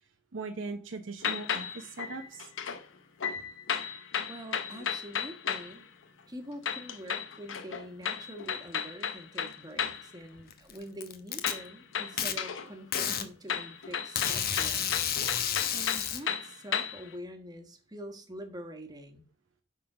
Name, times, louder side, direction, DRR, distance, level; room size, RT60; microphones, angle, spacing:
voice 1, 0.3-2.5, right 3 dB, 85° right, 0.9 m, -39 dB
sound 1, 1.2-2.8 3.2-5.8 6.6-10.1 11.4-12.7 12.9-17.1, left 7 dB, 85° left, 0.8 m, -34 dB
voice 2, 4.3-5.8 6.3-14.9 15.7-19.2, equal, 20° right, 1.3 m, -45 dB
Packing tape duct tape, 10.5-11.5 12.2-12.3 12.9-13.3 14.2-16.2, left 9 dB, 55° left, 0.9 m, -30 dB
9.0 x 3.9 x 6.0 m
head